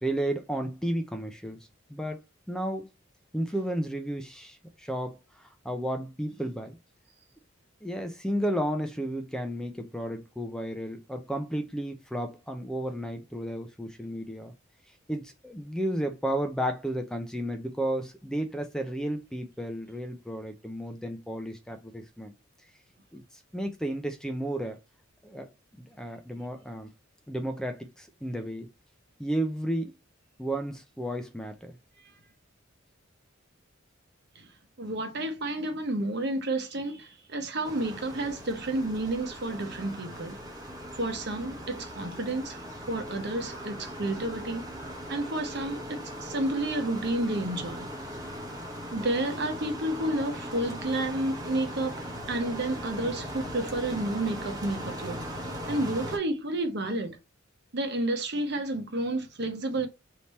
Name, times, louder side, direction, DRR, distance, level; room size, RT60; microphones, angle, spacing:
voice 1, 0.0-2.2 2.5-2.9 3.3-6.8 7.8-14.5 15.1-22.3 23.1-24.8 25.2-25.5 25.8-26.9 27.3-28.7 29.2-29.9 30.4-31.8, right 1 dB, 5° left, 0.5 m, -33 dB
voice 2, 34.8-40.4 40.9-44.7 45.1-47.9 48.9-55.2 55.7-57.2 57.7-59.9, right 1 dB, 55° right, 0.9 m, -31 dB
sound 1, 37.6-56.2, equal, 20° right, 1.0 m, -39 dB
3.4 x 2.9 x 4.2 m
head